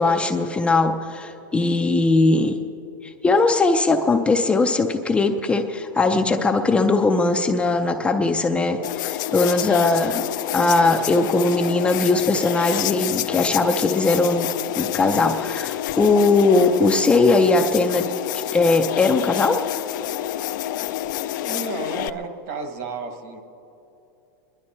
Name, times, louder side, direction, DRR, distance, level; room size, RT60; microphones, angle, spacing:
voice 1, 0.0-2.6 3.0-10.2 10.5-18.1 18.5-19.6, left 3 dB, 10° left, 4 dB, 0.4 m, -20 dB
sound 1, 8.8-22.1, left 13 dB, 65° left, 0.5 m, -28 dB
voice 2, 21.4-23.4, right 3 dB, 55° right, 6 dB, 1.5 m, -32 dB
23.5 x 11.0 x 4.3 m, 2.9 s
supercardioid pair, 155°, 11 cm